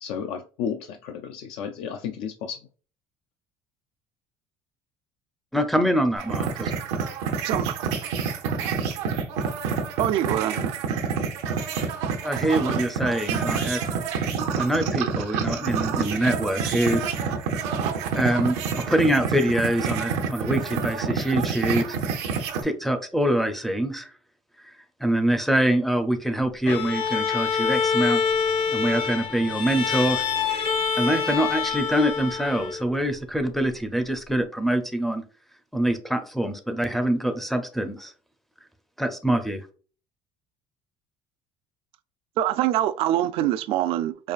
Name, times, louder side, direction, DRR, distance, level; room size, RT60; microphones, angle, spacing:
voice 1, 0.0-2.7, left 7 dB, 75° left, 0.4 m, -33 dB
voice 2, 5.5-6.7 12.2-13.8 14.6-17.3 18.1-21.9 22.6-24.1 25.0-28.2 28.7-30.2 30.5-30.6 31.0-35.2 35.7-38.1 39.0-39.7, right 1 dB, ahead, 0.4 m, -24 dB
sound 1, 6.2-22.6, right 6 dB, 90° right, 0.7 m, -28 dB
voice 3, 7.4-7.9 10.0-11.1 42.4-44.3, right 12 dB, 65° right, 0.4 m, -25 dB
Bowed string instrument, 26.7-33.0, left 6 dB, 55° left, 0.8 m, -26 dB
4.6 x 2.4 x 2.4 m
cardioid pair, 135°, 10 cm